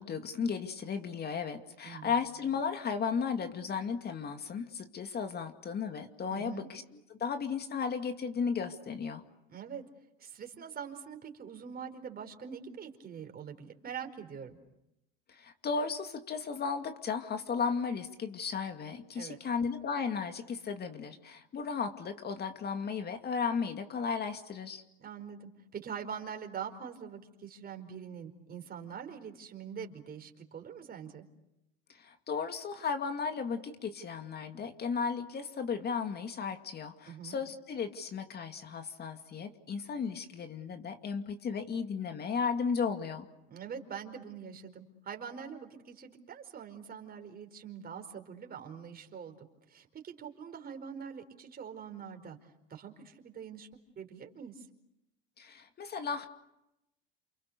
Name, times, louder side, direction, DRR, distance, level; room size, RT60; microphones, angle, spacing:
voice 1, 0.0-6.8 7.1-9.2 15.3-24.8 31.9-43.3 55.4-56.3, left 6 dB, 35° left, 7 dB, 2.4 m, -35 dB
voice 2, 1.8-2.1 6.3-6.7 9.5-9.8 10.2-14.6 19.1-19.4 25.0-31.2 37.0-37.4 43.5-52.4 52.7-53.7 54.0-54.6, right 7 dB, 30° right, 5 dB, 4.8 m, -44 dB
29.0 x 28.5 x 6.8 m, 0.87 s
supercardioid pair, 105°, 29 cm